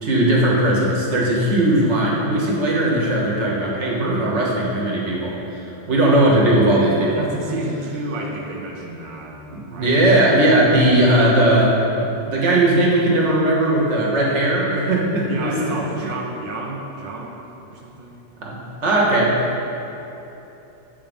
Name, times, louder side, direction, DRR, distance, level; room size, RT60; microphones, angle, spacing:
voice 1, 0.0-5.3 5.9-7.3 9.5-11.8 12.2-15.5 18.4-19.3, right 1 dB, 85° right, -4 dB, 1.5 m, -18 dB
voice 2, 6.8-10.1 10.7-11.0 15.3-18.3, right 2 dB, 55° right, -1 dB, 0.8 m, -31 dB
7.5 x 3.7 x 5.3 m, 3.0 s
omnidirectional pair, 1.2 m